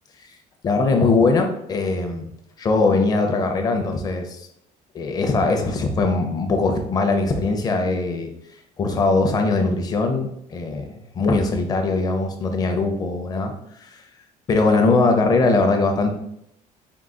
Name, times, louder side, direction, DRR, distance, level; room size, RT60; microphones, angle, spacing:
voice 1, 0.6-2.3 2.6-4.5 4.9-8.3 8.8-10.9 11.1-13.5 13.8-14.0 14.5-16.1, left 3 dB, 30° left, 4 dB, 0.5 m, -21 dB
4.5 x 2.2 x 3.7 m, 0.76 s
cardioid pair, 170°, 14 cm